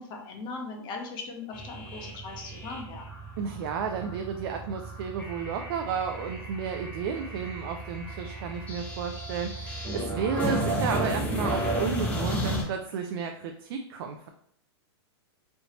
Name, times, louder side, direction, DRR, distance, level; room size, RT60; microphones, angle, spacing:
voice 1, 0.0-3.1, left 3 dB, 30° left, 1 dB, 0.8 m, -39 dB
sound 1, 1.5-12.6, right 1 dB, 10° left, 1.2 m, -33 dB
voice 2, 3.4-14.3, right 6 dB, 55° right, 4 dB, 0.4 m, -32 dB
3.2 x 2.7 x 2.9 m, 0.69 s
hypercardioid pair, 130°, 14 cm